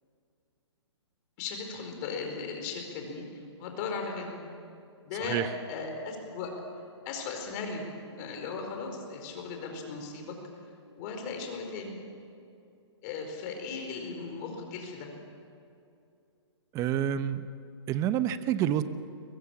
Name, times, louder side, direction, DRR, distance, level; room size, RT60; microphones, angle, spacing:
voice 1, 1.4-3.3 3.6-4.4 5.0-5.4 5.7-6.5 7.0-7.9 8.2-10.4 11.0-12.0 13.0-15.2, left 5 dB, 35° left, 3 dB, 4.7 m, -37 dB
voice 2, 5.2-5.5 16.7-17.5 17.9-18.8, right 10 dB, 20° right, 12 dB, 0.9 m, -28 dB
22.0 x 22.0 x 7.3 m, 2.6 s
hypercardioid pair, 140°, 15 cm